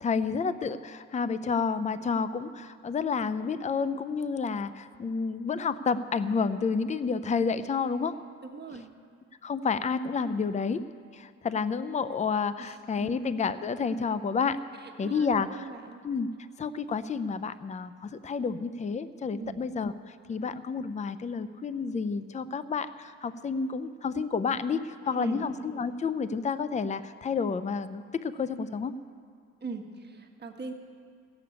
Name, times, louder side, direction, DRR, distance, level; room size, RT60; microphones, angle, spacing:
voice 1, 0.0-8.1 9.4-10.8 11.1-14.6 15.0-15.6 16.0-16.3 16.6-28.9, left 5 dB, 25° left, 13 dB, 0.5 m, -30 dB
voice 2, 8.5-8.9 12.6-13.1 14.8-16.0 19.4-19.6 25.1-25.5 29.6-30.7, right 4 dB, 35° right, 3 dB, 1.4 m, -41 dB
15.0 x 7.0 x 8.6 m, 2.1 s
cardioid pair, 90°, 30 cm